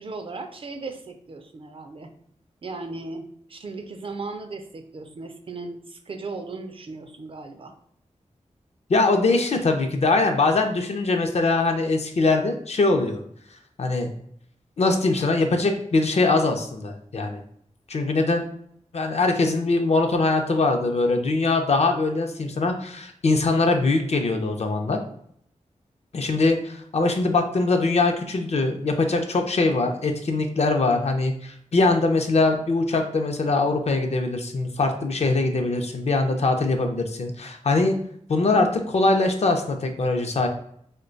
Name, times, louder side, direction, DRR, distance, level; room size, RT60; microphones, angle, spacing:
voice 1, 0.0-2.1 2.6-7.7, right 3 dB, 45° right, 6 dB, 0.4 m, -37 dB
voice 2, 8.9-13.2 13.8-14.1 14.8-17.4 17.9-18.4 18.9-25.0 26.1-38.0 38.3-40.5, left 3 dB, 55° left, 4 dB, 0.5 m, -22 dB
3.0 x 2.2 x 3.8 m, 0.67 s
wide cardioid pair, 115°, 13 cm